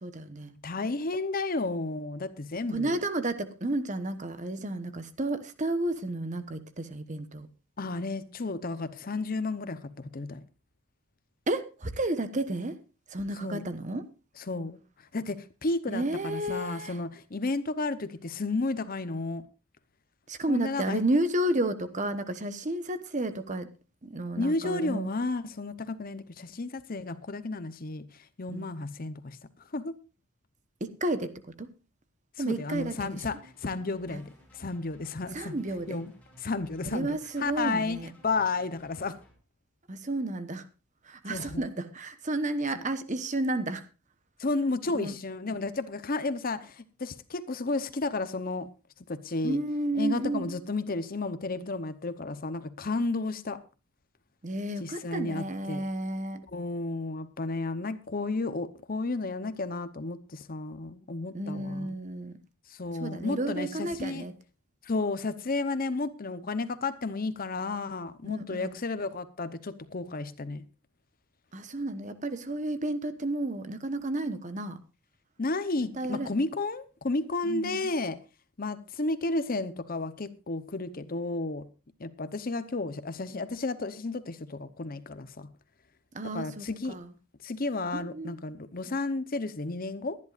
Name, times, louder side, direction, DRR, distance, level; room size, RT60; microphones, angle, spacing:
voice 1, 0.0-0.5 2.7-7.5 11.5-12.8 13.1-14.0 15.9-17.0 20.3-23.7 24.0-25.1 28.5-28.7 30.8-31.7 32.4-33.2 34.1-34.2 35.3-36.0 36.8-38.1 39.9-40.7 41.0-43.8 44.9-45.1 49.4-50.6 54.4-56.4 61.3-62.4 62.9-64.3 68.2-68.7 71.5-74.8 76.0-76.3 77.4-77.9 86.1-87.1 87.9-88.4, right 1 dB, 35° right, 1.0 m, -32 dB
voice 2, 0.6-3.0 7.8-10.4 13.4-13.6 14.4-14.8 15.1-19.4 20.5-21.0 24.4-29.4 29.7-30.0 32.4-35.6 35.9-36.1 36.4-39.2 41.3-41.6 42.8-42.9 44.4-48.7 49.1-49.6 50.0-53.6 54.8-55.9 56.5-61.9 62.7-64.3 64.8-70.6 75.4-78.2 78.6-81.7 82.0-85.5 86.3-87.0 87.4-90.2, left 3 dB, 40° left, 0.8 m, -32 dB
sound 1, 32.5-39.3, equal, 5° left, 5.5 m, -57 dB
22.5 x 11.0 x 2.5 m
head